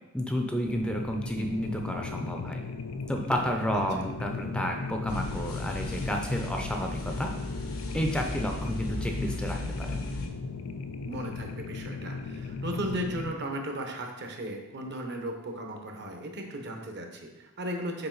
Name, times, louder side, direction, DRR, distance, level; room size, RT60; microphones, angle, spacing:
voice 1, 0.1-2.7 3.1-7.4 7.9-10.0, equal, 5° left, 3 dB, 0.5 m, -31 dB
sound 1, 0.6-13.3, left 4 dB, 70° left, 0.4 m, -37 dB
sound 2, 5.1-10.3, left 1 dB, 90° left, 1.0 m, -37 dB
voice 2, 11.0-18.1, right 1 dB, 55° right, 3 dB, 0.9 m, -36 dB
6.9 x 4.5 x 3.9 m, 0.99 s
head